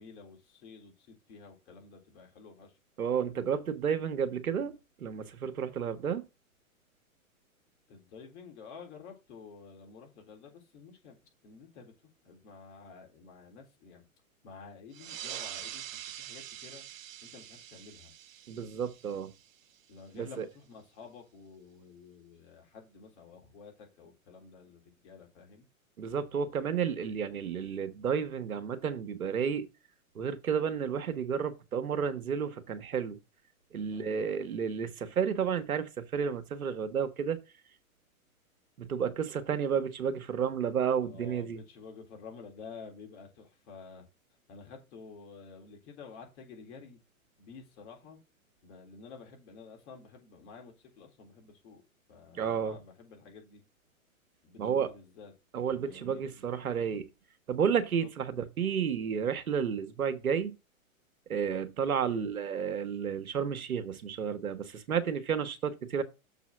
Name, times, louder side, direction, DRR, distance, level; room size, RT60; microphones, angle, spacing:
voice 1, 0.0-2.8 7.9-11.9 12.2-14.1 14.4-16.8 17.2-18.1 19.9-25.7 33.9-34.4 41.0-44.0 44.5-47.0 47.4-48.2 48.6-51.8 52.1-53.6 54.4-55.3 55.7-56.2 58.0-58.1 62.0-62.3, left 5 dB, 55° left, 3.6 m, -51 dB
voice 2, 3.0-4.7 5.0-6.2 18.5-19.3 20.1-20.5 26.0-29.7 30.1-33.2 33.7-37.4 38.8-41.6 52.3-52.8 54.6-54.9 55.5-57.1 57.5-60.6 61.3-66.0, right 7 dB, 85° right, 1.4 m, -31 dB
sound 1, 14.9-20.0, right 11 dB, 65° right, 0.8 m, -45 dB
6.9 x 4.1 x 6.1 m
hypercardioid pair, 120°, 42 cm